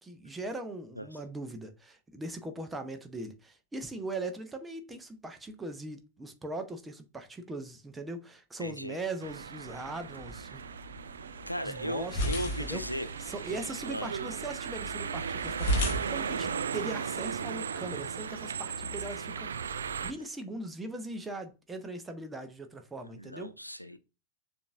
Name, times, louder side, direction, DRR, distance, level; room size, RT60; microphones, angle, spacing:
voice 1, 0.0-10.6 11.6-12.8 13.2-23.5, right 2 dB, 10° right, 0.7 m, -40 dB
voice 2, 8.6-9.0 11.5-13.1 13.9-14.1 19.9-20.1 23.0-24.0, equal, 90° left, 0.3 m, -37 dB
sound 1, 9.2-20.1, right 6 dB, 70° right, 0.3 m, -37 dB
cortina de baño abriendo y cerrando, 9.6-17.7, equal, 50° left, 1.0 m, -37 dB
6.8 x 2.6 x 2.4 m
figure-of-eight pair, 95°, 0 cm